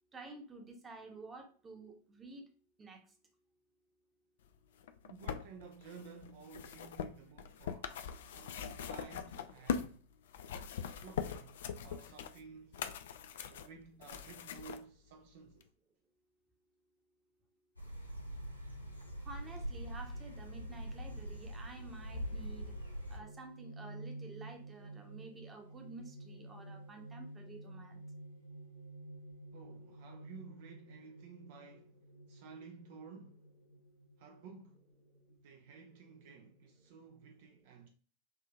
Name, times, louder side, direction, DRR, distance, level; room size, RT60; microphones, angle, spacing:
voice 1, 0.1-2.4 2.8-3.0 19.2-22.8 23.1-28.0, right 3 dB, 15° right, 0.9 m, -51 dB
sound 1, 4.8-10.0 10.3-14.8 15.6-15.7, left 7 dB, 60° left, 0.4 m, -42 dB
voice 2, 5.0-10.1 11.0-12.9 13.5-15.7 29.5-32.0 32.3-33.4 34.2-34.8 35.3-37.9, right 5 dB, 50° right, 0.5 m, -54 dB
sound 2, 17.8-23.2, equal, 90° left, 0.8 m, -43 dB
sound 3, 18.1-37.3, right 2 dB, 85° right, 1.3 m, -53 dB
5.6 x 2.7 x 2.3 m
figure-of-eight pair, 90°, 0 cm